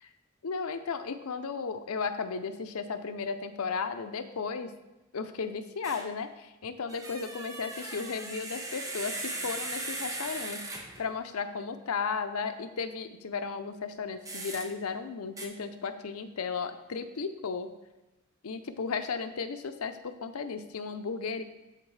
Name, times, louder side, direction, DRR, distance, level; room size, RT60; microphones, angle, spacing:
voice 1, 0.4-4.7 5.1-10.7 11.0-17.7 18.4-21.4, left 5 dB, 90° left, 8 dB, 0.6 m, -35 dB
sound 1, 5.8-6.1 6.9-11.1 14.2-14.7 15.4-15.5, right 2 dB, 15° right, 0.7 m, -38 dB
13.0 x 4.6 x 3.2 m, 1.0 s
head